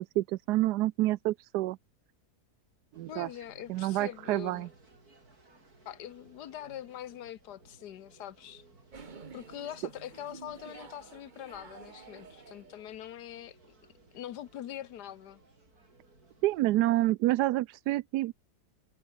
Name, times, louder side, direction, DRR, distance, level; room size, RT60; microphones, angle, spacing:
voice 1, 0.0-1.8 2.9-3.3 3.7-4.7 16.4-18.3, right 16 dB, 80° right, 1.1 m, -28 dB
sound 1, 2.9-17.1, right 2 dB, 65° right, 5.6 m, -61 dB
voice 2, 3.1-4.7 5.8-8.6 9.3-13.6 14.1-15.4, left 11 dB, 75° left, 1.5 m, -43 dB
sound 2, 8.9-13.0, right 5 dB, 30° right, 1.2 m, -50 dB
omnidirectional pair, 1.8 m